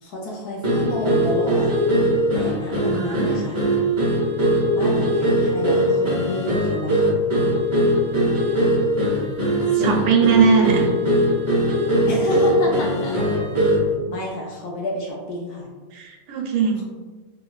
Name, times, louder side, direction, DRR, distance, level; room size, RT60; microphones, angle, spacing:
voice 1, 0.0-1.7 2.3-3.6 4.7-7.1 9.7-10.1 12.1-13.5 14.0-15.7, left 1 dB, 70° left, -2 dB, 0.9 m, -30 dB
sound 1, 0.6-13.9, equal, 40° right, 0.4 m, -20 dB
voice 2, 2.7-3.3 9.7-10.9 15.9-16.8, right 5 dB, 80° right, 0 dB, 1.3 m, -20 dB
3.2 x 3.0 x 2.3 m, 1.3 s
omnidirectional pair, 2.1 m